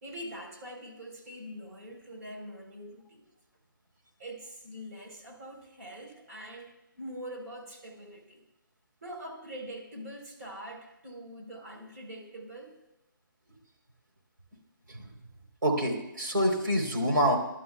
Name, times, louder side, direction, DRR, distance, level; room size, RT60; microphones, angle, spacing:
voice 1, 0.0-3.3 4.2-6.7 6.9-8.4 9.0-12.7, equal, 45° right, 1 dB, 3.9 m, -43 dB
voice 2, 15.6-17.4, equal, 65° right, 1 dB, 3.6 m, -26 dB
26.5 x 12.0 x 2.3 m, 0.94 s
figure-of-eight pair, 140°, 11 cm